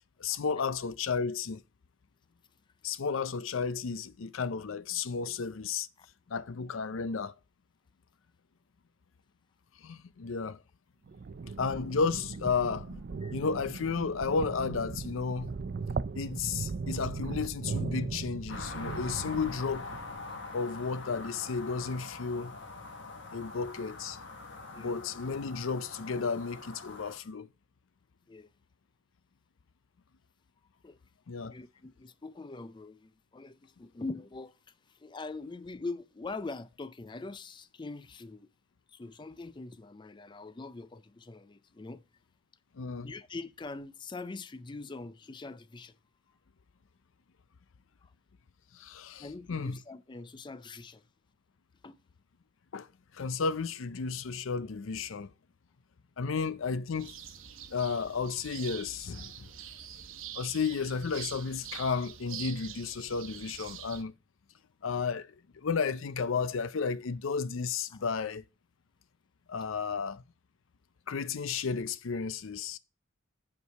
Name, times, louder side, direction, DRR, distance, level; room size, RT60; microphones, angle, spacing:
voice 1, 0.2-1.6 2.8-5.9 6.3-7.3 9.8-10.6 11.6-13.0 13.3-15.5 16.2-19.9 20.5-22.5 23.3-24.2 24.8-27.5 31.3-31.5 42.7-43.1 48.7-49.8 52.7-52.9 53.1-55.3 56.2-57.2 57.7-59.3 60.3-64.1 64.8-68.4 69.5-70.2 71.1-72.8, left 5 dB, 80° left, 0.5 m, -33 dB
sound 1, 11.1-20.3, right 4 dB, 50° right, 0.4 m, -38 dB
sound 2, 18.5-27.2, left 3 dB, 60° left, 1.3 m, -44 dB
voice 2, 31.5-38.5 38.9-42.0 43.0-46.0 48.0-48.1 49.2-51.1 51.8-52.0 67.9-68.0, left 3 dB, 25° left, 0.4 m, -43 dB
sound 3, 57.0-64.0, right 9 dB, 80° right, 1.0 m, -45 dB
8.3 x 4.6 x 4.7 m
head